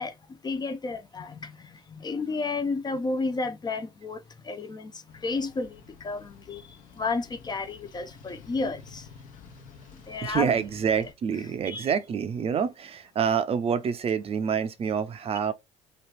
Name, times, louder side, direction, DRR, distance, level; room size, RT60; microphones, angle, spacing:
voice 1, 0.0-9.1 10.1-10.6 11.7-11.9, left 3 dB, 25° left, 0.5 m, -32 dB
sound 1, 5.1-11.1, left 6 dB, 60° left, 0.9 m, -50 dB
voice 2, 10.2-15.5, right 7 dB, 40° right, 0.5 m, -27 dB
3.0 x 2.4 x 3.1 m
hypercardioid pair, 70°, 15 cm